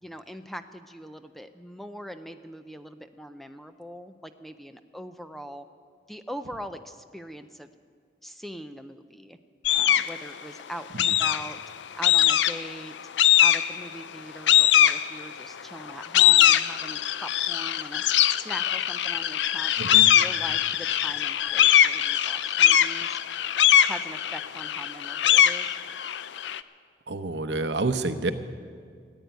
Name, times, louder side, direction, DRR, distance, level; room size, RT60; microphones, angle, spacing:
voice 1, 0.0-5.6 6.1-7.7 8.2-9.4 9.7-11.6 12.0-13.0 13.4-18.0 18.4-23.2 23.9-25.8, equal, ahead, 9 dB, 0.5 m, -41 dB
sound 1, 9.6-10.2 11.0-11.6 12.0-12.7 13.2-13.9 14.5-15.4 15.9-26.6, left 11 dB, 90° left, 0.4 m, -21 dB
voice 2, 27.1-28.3, right 3 dB, 80° right, 9 dB, 0.8 m, -28 dB
14.5 x 9.5 x 9.2 m, 2.1 s
head